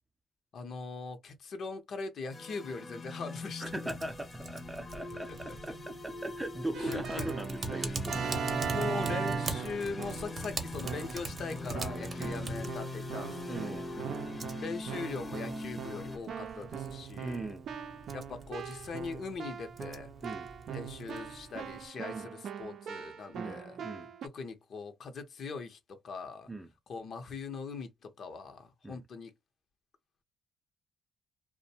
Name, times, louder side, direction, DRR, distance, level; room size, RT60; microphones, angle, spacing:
voice 1, 0.5-3.8 6.7-7.3 7.7-8.0 8.6-13.8 14.6-17.4 18.1-20.1 20.7-23.8 24.3-26.5 26.9-29.3, left 4 dB, 60° left, 0.7 m, -41 dB
sound 1, 2.3-16.2, left 2 dB, 25° left, 0.7 m, -42 dB
voice 2, 3.6-8.4 12.1-12.5 13.4-14.3 17.2-17.7 20.2-20.5 22.1-22.3 23.3-24.1 26.5-26.7 28.8-29.0, right 1 dB, 15° right, 0.5 m, -40 dB
Typing, 3.8-21.9, right 3 dB, 40° right, 0.8 m, -44 dB
Keyboard (musical), 6.7-10.4 10.8-11.3 11.7-24.3, right 7 dB, 65° right, 0.5 m, -40 dB
2.5 x 2.1 x 2.7 m
cardioid pair, 90°, 0 cm